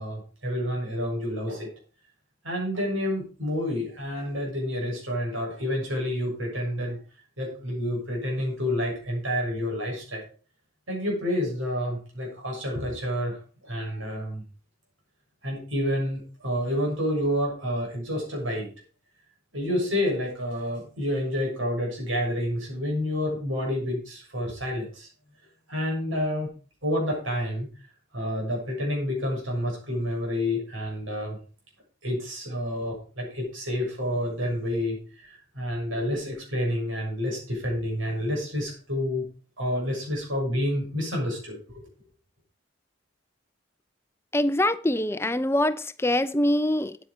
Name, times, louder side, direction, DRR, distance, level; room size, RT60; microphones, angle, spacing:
voice 1, 0.0-1.7 2.4-7.0 7.4-10.2 10.9-13.4 13.6-14.4 15.4-18.7 19.5-25.1 25.7-26.5 26.8-27.7 28.1-31.4 32.0-35.0 35.2-39.3 39.6-41.8, equal, 85° right, 6.8 m, -29 dB
voice 2, 44.3-47.0, left 1 dB, 15° left, 0.5 m, -24 dB
9.4 x 9.3 x 5.0 m
head